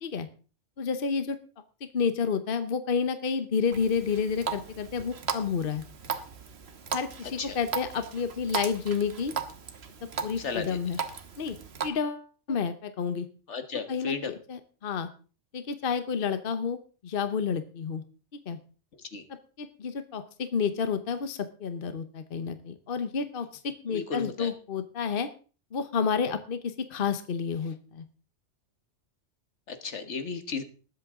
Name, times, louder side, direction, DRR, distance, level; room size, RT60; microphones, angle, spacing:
voice 1, 0.8-1.4 1.9-5.8 6.9-9.3 10.2-11.0 11.4-11.6 11.8-13.3 13.9-15.1 15.5-16.8 17.0-18.0 18.3-18.6 19.6-25.3 25.7-28.0, left 6 dB, 50° left, 11 dB, 1.1 m, -30 dB
Water tap faucet, 3.7-11.9, right 6 dB, 65° right, 1.4 m, -37 dB
voice 2, 10.4-10.8 13.5-14.3 18.9-19.2 23.9-24.5 29.7-30.6, left 5 dB, 75° left, 9 dB, 1.7 m, -34 dB
20.0 x 8.0 x 3.6 m, 0.37 s
omnidirectional pair, 1.2 m